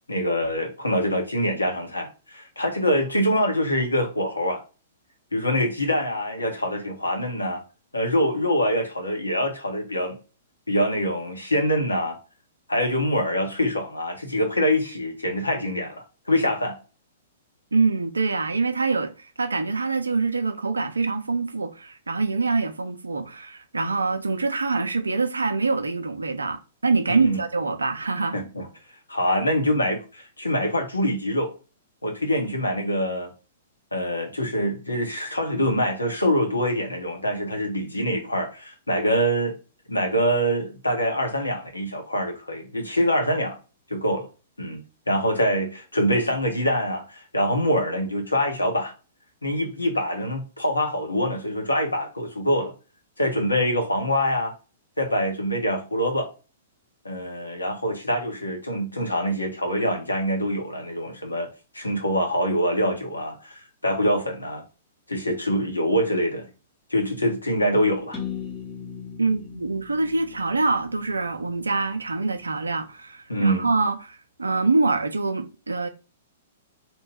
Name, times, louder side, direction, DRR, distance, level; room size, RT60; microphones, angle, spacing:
voice 1, 0.1-4.6 5.3-7.6 7.9-10.1 10.7-12.2 12.7-16.8 27.1-27.4 28.3-28.7 29.1-31.5 32.0-33.3 33.9-39.5 39.9-43.6 43.9-44.3 44.6-44.8 45.1-48.9 49.4-52.7 53.2-54.5 55.0-56.3 57.0-61.5 61.7-64.6 65.1-66.5 66.9-68.2 73.3-73.7, equal, 80° left, 0.9 m, -24 dB
voice 2, 17.7-28.4 69.2-75.9, right 3 dB, 75° right, 0.4 m, -25 dB
sound 1, 68.1-72.0, left 7 dB, 20° left, 0.9 m, -38 dB
2.9 x 2.2 x 3.2 m
figure-of-eight pair, 110°, 0 cm